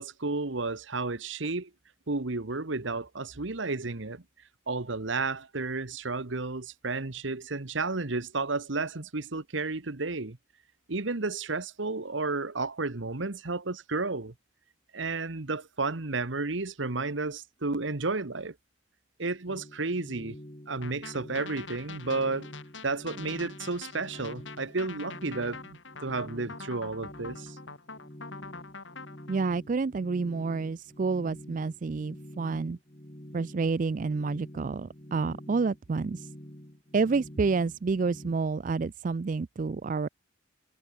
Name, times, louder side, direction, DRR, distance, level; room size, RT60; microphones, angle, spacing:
voice 1, 0.0-1.7 2.1-4.2 4.7-10.4 10.9-14.3 14.9-18.5 19.2-20.4 20.7-22.5 22.8-27.6, right 3 dB, 75° right, 1.3 m, -32 dB
sound 1, 19.5-38.4, equal, 30° left, 3.7 m, -47 dB
sound 2, 20.8-29.4, left 4 dB, 75° left, 4.3 m, -45 dB
voice 2, 29.3-32.8 33.3-36.3 36.9-40.1, right 4 dB, 40° right, 0.4 m, -29 dB
head